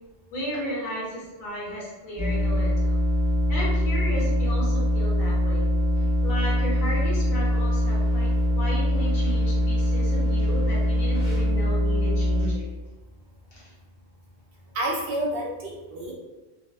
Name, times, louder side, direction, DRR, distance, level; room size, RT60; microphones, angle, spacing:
voice 1, 0.3-3.0 3.5-12.6 13.5-13.7, equal, 60° left, -5 dB, 1.0 m, -34 dB
sound 1, 2.2-12.4, left 1 dB, 15° left, 1.0 m, -23 dB
voice 2, 14.7-16.1, right 1 dB, 65° right, -3 dB, 0.7 m, -29 dB
2.7 x 2.1 x 2.2 m, 1.1 s
omnidirectional pair, 1.2 m